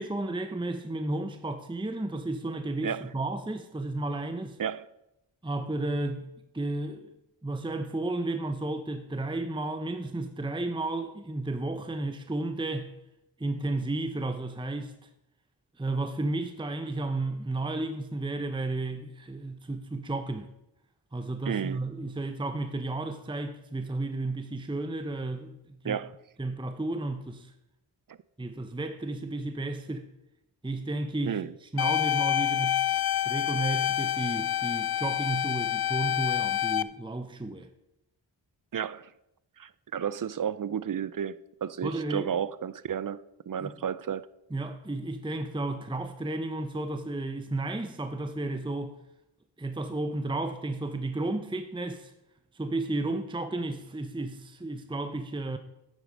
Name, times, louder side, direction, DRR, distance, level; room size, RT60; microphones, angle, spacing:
voice 1, 0.0-4.6 5.4-7.1 7.4-13.0 13.4-15.1 15.8-20.5 21.1-26.0 26.4-27.5 28.4-30.1 30.6-32.8 33.3-37.7 41.8-42.3 43.6-43.7 44.5-49.0 49.6-52.1 52.5-55.6, right 2 dB, 10° right, 0.8 m, -33 dB
voice 2, 21.5-21.8 25.8-26.2 31.3-31.5 38.7-39.1 39.6-44.2, right 8 dB, 45° right, 0.5 m, -32 dB
sound 1, 31.8-36.8, left 12 dB, 50° left, 0.5 m, -27 dB
9.2 x 8.3 x 5.3 m
cardioid pair, 45°, 47 cm